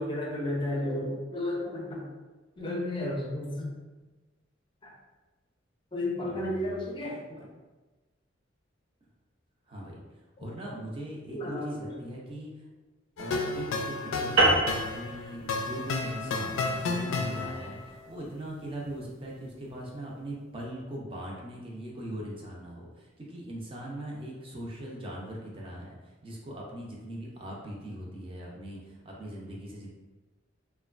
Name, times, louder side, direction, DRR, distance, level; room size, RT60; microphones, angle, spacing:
voice 1, 0.0-2.1 2.6-3.7 4.8-4.9 5.9-7.5 11.3-12.0 13.3-13.4, left 1 dB, 25° left, -1 dB, 0.5 m, -33 dB
voice 2, 6.2-6.8 7.3-7.5 9.7-10.0 10.4-12.6 13.2-14.6 14.9-29.9, right 1 dB, 30° right, -3 dB, 0.6 m, -40 dB
sound 1, 13.2-17.9, left 3 dB, 80° left, 0.3 m, -32 dB
sound 2, 14.4-19.1, right 2 dB, 85° right, 0.6 m, -29 dB
3.0 x 2.2 x 2.4 m, 1.2 s
head